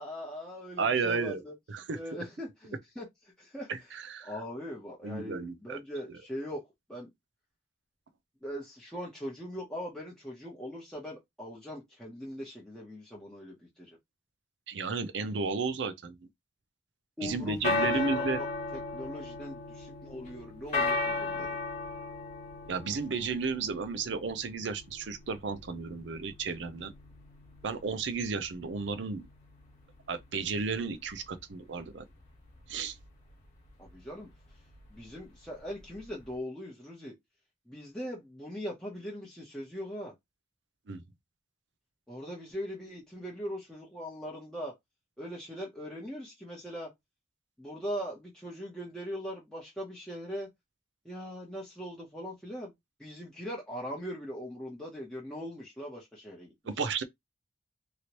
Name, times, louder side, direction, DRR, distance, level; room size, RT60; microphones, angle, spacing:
voice 1, 0.0-1.5 1.9-3.1 3.4-3.7 4.2-6.6 6.9-7.1 8.4-13.9 17.2-18.5 18.7-21.6 33.8-34.3 34.9-37.2 37.7-40.1 42.1-44.7 45.2-46.9 47.6-50.5 51.0-52.7 53.0-56.5, equal, 5° left, 0.8 m, -40 dB
voice 2, 0.8-1.4 1.7-2.0 3.7-4.3 5.0-5.8 14.7-16.2 17.2-18.4 22.7-26.9 27.6-29.3 30.1-32.0 32.7-32.9 40.9-41.0 56.7-57.0, right 4 dB, 65° right, 0.5 m, -33 dB
sound 1, 17.3-36.3, left 3 dB, 40° left, 1.2 m, -37 dB
3.0 x 2.8 x 2.9 m
head